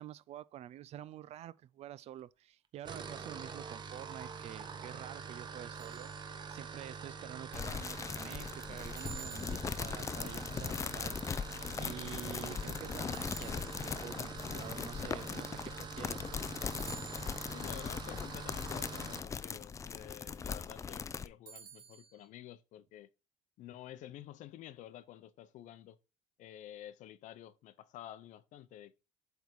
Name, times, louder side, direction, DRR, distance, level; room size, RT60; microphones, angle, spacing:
voice 1, 0.0-11.2 11.8-16.4, right 11 dB, 55° right, 0.4 m, -48 dB
sound 1, 2.7-19.3, right 5 dB, 35° right, 0.9 m, -46 dB
sound 2, 5.7-6.7 9.0-10.2 13.1-14.2 16.7-17.7 21.5-22.2, right 8 dB, 80° right, 1.7 m, -52 dB
sound 3, 7.5-21.3, left 6 dB, 25° left, 0.4 m, -40 dB
voice 2, 17.5-23.1 23.6-26.0 26.4-29.0, left 12 dB, 70° left, 0.7 m, -50 dB
7.9 x 3.6 x 4.6 m
cardioid pair, 130°, 13 cm